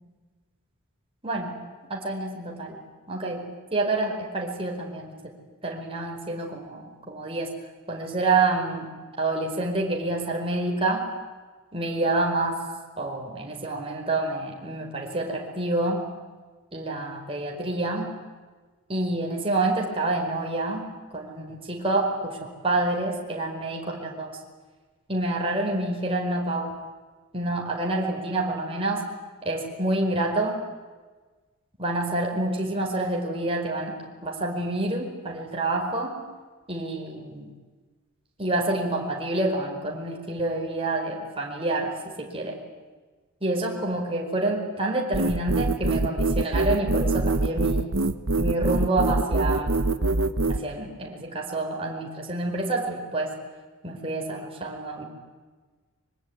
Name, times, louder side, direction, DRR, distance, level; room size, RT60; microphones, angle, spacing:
voice 1, 1.2-1.6 1.9-2.8 3.1-5.3 5.6-7.5 7.9-8.9 9.2-11.1 11.7-12.6 13.0-16.0 16.7-18.1 18.9-20.8 21.1-24.3 25.1-26.7 27.3-29.0 29.4-30.6 31.8-36.2 36.7-37.5 38.4-42.6 43.4-47.9 48.4-49.9 50.5-53.3 53.8-55.0, right 2 dB, 25° right, 0 dB, 4.8 m, -28 dB
sound 1, 45.1-50.6, right 2 dB, 65° right, 1.2 m, -24 dB
25.0 x 23.5 x 9.5 m, 1.3 s
head